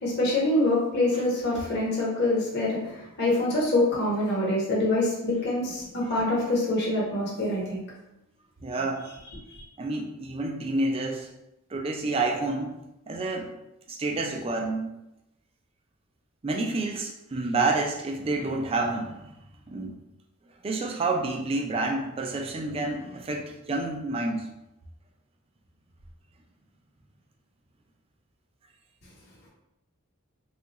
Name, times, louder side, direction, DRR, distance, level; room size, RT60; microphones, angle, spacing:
voice 1, 0.0-7.8 9.5-9.6, left 1 dB, 50° left, -5 dB, 1.0 m, -25 dB
voice 2, 8.6-9.1 9.8-11.3 11.7-13.5 13.9-14.9 16.4-19.3 19.7-20.0 20.6-24.5, right 2 dB, 25° right, 2 dB, 0.4 m, -29 dB
3.4 x 2.4 x 2.9 m, 0.90 s
head